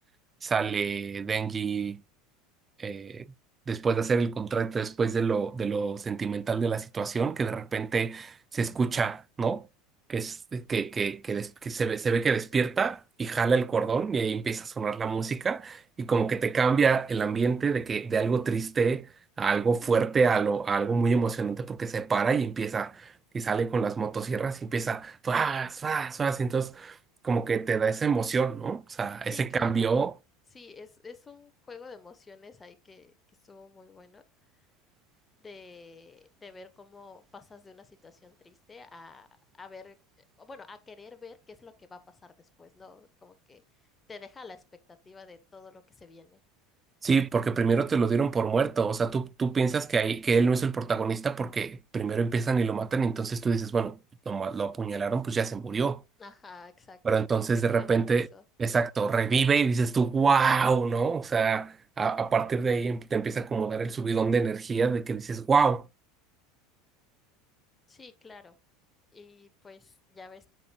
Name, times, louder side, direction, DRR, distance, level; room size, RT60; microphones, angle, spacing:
voice 1, 0.4-2.0 2.8-3.3 3.7-9.7 10.1-19.1 19.4-27.0 27.2-30.1 47.0-54.0 54.3-56.0 57.0-58.3 58.6-65.9, right 5 dB, 25° right, 0.4 m, -27 dB
voice 2, 29.3-30.0 30.5-33.1 33.4-34.2 35.4-39.3 39.5-40.0 40.4-42.3 42.6-43.6 44.1-46.4 56.2-58.4 67.9-68.6 69.1-70.5, left 4 dB, 20° left, 1.1 m, -49 dB
8.4 x 6.2 x 2.3 m
hypercardioid pair, 80°, 0 cm